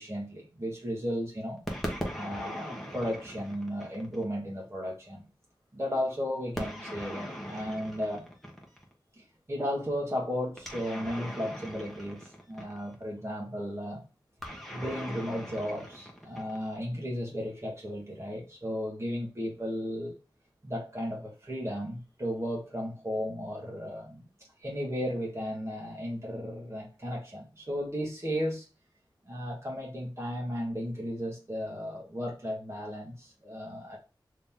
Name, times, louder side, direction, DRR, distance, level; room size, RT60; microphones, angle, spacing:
voice 1, 0.0-1.6 2.1-5.2 5.7-8.3 9.2-14.0 14.7-20.2 20.6-24.2 24.6-28.6 29.3-34.0, equal, 35° right, 1.2 m, -35 dB
sound 1, 1.7-4.3 6.5-8.9 10.6-13.0 14.4-16.8, equal, ahead, 1.1 m, -40 dB
2.9 x 2.8 x 3.6 m
wide cardioid pair, 65°, 8 cm